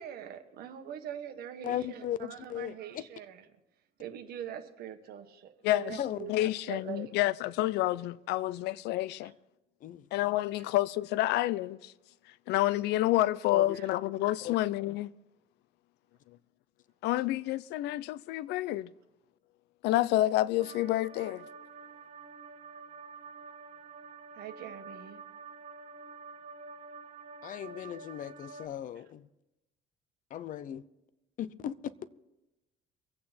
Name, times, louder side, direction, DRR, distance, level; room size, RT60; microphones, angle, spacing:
voice 1, 0.0-3.4 4.0-7.1 13.7-13.9 24.3-25.2, right 9 dB, 65° right, 1.5 m, -43 dB
voice 2, 1.6-3.1 6.0-6.4 9.8-10.1 13.5-13.8 14.4-14.5 27.4-29.3 30.3-30.8 31.4-31.7, left 11 dB, 50° left, 0.7 m, -37 dB
voice 3, 5.6-6.0 6.3-9.3 10.1-11.9 12.5-15.1 17.0-18.9 19.8-21.5, left 15 dB, 90° left, 0.5 m, -29 dB
sound 1, 20.6-28.7, right 4 dB, 40° right, 1.0 m, -48 dB
24.0 x 8.5 x 4.3 m
cardioid pair, 145°, 17 cm